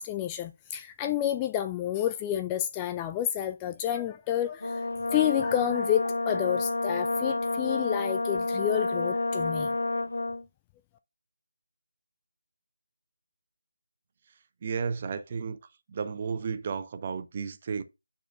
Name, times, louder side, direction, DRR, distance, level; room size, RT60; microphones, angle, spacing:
voice 1, 0.0-9.7, left 11 dB, 15° left, 0.3 m, -30 dB
Brass instrument, 4.6-10.4, left 2 dB, 65° left, 0.7 m, -29 dB
voice 2, 14.6-15.6 15.9-17.8, right 5 dB, 30° right, 0.7 m, -33 dB
10.0 x 4.4 x 2.5 m
figure-of-eight pair, 155°, 0 cm